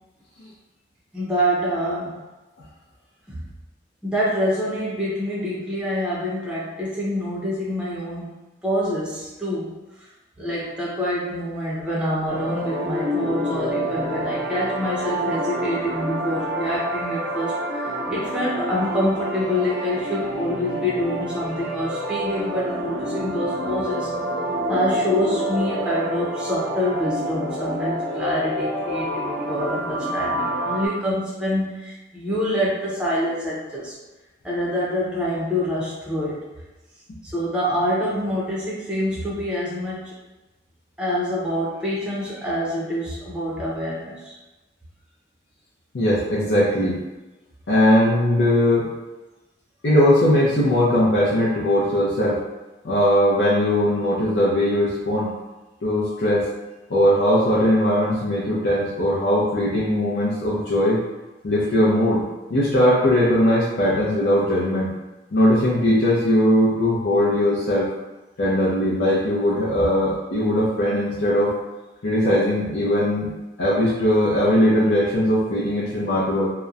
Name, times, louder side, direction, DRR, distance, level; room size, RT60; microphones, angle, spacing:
voice 1, 1.1-2.2 3.3-3.5 4.0-8.3 8.6-9.7 10.4-17.5 17.8-24.1 24.7-34.0 34.4-36.4 37.2-40.1 41.0-44.3, equal, 5° right, -7 dB, 0.5 m, -26 dB
sound 1, 12.3-30.9, right 1 dB, 85° right, 0.8 m, -28 dB
voice 2, 45.9-47.0 47.7-48.9 49.8-52.4 52.8-55.3 55.8-56.5 56.9-61.0 61.4-62.2 62.5-64.9 65.3-67.9 68.4-71.5 72.0-73.3 73.6-76.5, left 1 dB, 70° left, -7 dB, 0.5 m, -19 dB
2.8 x 2.1 x 2.4 m, 1.1 s
head